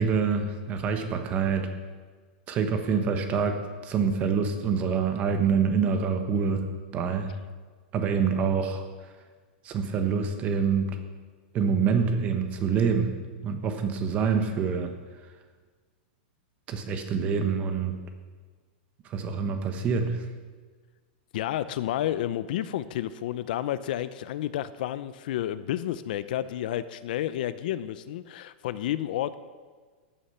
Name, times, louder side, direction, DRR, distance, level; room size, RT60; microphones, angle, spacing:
voice 1, 0.0-1.7 2.5-3.6 3.8-6.6 6.9-7.3 7.9-8.8 9.6-10.9 11.5-13.1 13.4-14.9 16.7-17.9 19.1-20.2, right 6 dB, 25° right, 7 dB, 1.3 m, -26 dB
voice 2, 21.3-29.4, left 12 dB, 55° left, 14 dB, 0.6 m, -30 dB
14.5 x 9.9 x 5.7 m, 1.5 s
supercardioid pair, 160°, 6 cm